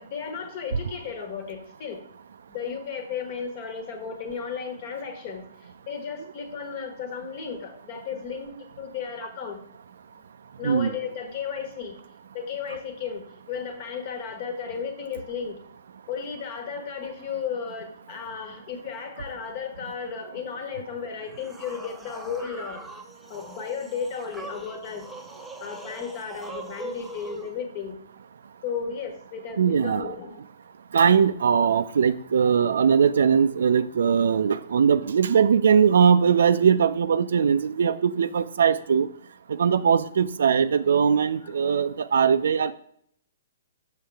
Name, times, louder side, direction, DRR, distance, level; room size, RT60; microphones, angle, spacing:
voice 1, 0.0-2.0 2.5-9.6 10.6-12.0 12.3-15.6 16.1-22.8 23.3-25.1 25.6-28.0 28.6-30.4 41.4-41.6, left 6 dB, 45° left, 6 dB, 1.4 m, -34 dB
sound 1, 21.2-27.5, right 2 dB, ahead, 0.7 m, -42 dB
voice 2, 29.6-30.1 30.9-39.1 39.6-42.7, right 7 dB, 80° right, 12 dB, 0.3 m, -20 dB
6.6 x 6.4 x 3.4 m, 0.66 s
hypercardioid pair, 145°, 0 cm